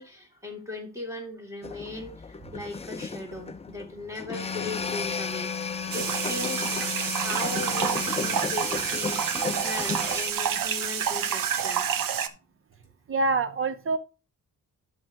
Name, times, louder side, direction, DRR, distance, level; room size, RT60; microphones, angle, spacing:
voice 1, 0.0-5.5 5.9-9.2 9.6-11.9, left 2 dB, 10° right, 2.6 m, -38 dB
sound 1, 1.6-10.3, left 4 dB, 20° left, 0.5 m, -34 dB
sound 2, 4.3-8.4, left 7 dB, 35° left, 1.7 m, -37 dB
sound 3, 5.9-12.3, right 9 dB, 80° right, 0.8 m, -28 dB
voice 2, 13.1-14.0, right 3 dB, 40° right, 0.8 m, -25 dB
12.5 x 6.3 x 2.9 m
cardioid pair, 120°, 33 cm